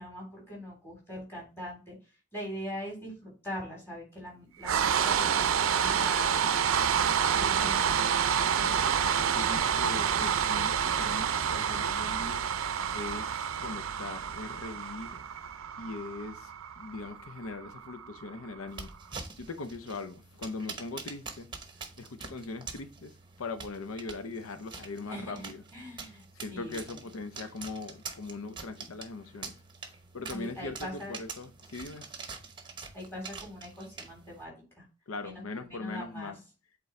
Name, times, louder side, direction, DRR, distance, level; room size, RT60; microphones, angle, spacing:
voice 1, 0.0-1.9 2.3-6.5 7.1-8.0 25.0-26.8 30.3-31.2 32.9-34.8 35.2-36.3, equal, 10° left, 3.5 m, -42 dB
sound 1, 4.6-18.7, right 7 dB, 85° right, 0.5 m, -28 dB
voice 2, 7.2-7.9 8.4-8.8 9.3-12.5 12.9-15.2 15.8-21.5 22.0-25.6 26.3-32.1 35.1-36.4, left 3 dB, 90° left, 0.7 m, -41 dB
sound 2, 18.7-34.4, right 5 dB, 20° right, 0.8 m, -45 dB
8.0 x 3.9 x 3.2 m
head